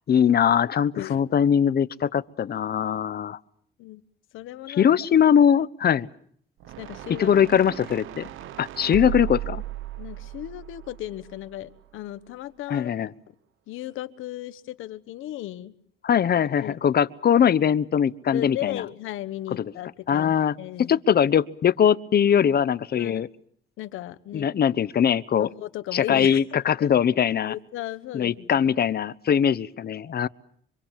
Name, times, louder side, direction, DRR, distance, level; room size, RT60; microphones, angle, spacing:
voice 1, 0.1-3.4 4.7-6.1 7.2-8.3 8.6-9.6 12.7-13.1 16.0-18.8 19.5-19.7 20.1-23.3 24.3-25.5 25.9-27.5 28.1-30.3, left 8 dB, 50° left, 17 dB, 1.0 m, -21 dB
voice 2, 4.3-4.9 5.8-5.9 6.8-7.3 8.9-9.1 10.0-12.9 13.7-15.7 16.6-16.8 18.3-21.0 23.0-23.3 23.8-24.5 25.4-26.4 26.8-26.9 27.5-28.7, left 14 dB, 90° left, 14 dB, 1.4 m, -35 dB
sound 1, 6.6-11.9, right 16 dB, 85° right, 1.1 m, -36 dB
26.0 x 25.0 x 7.4 m, 0.65 s
cardioid pair, 90°, 20 cm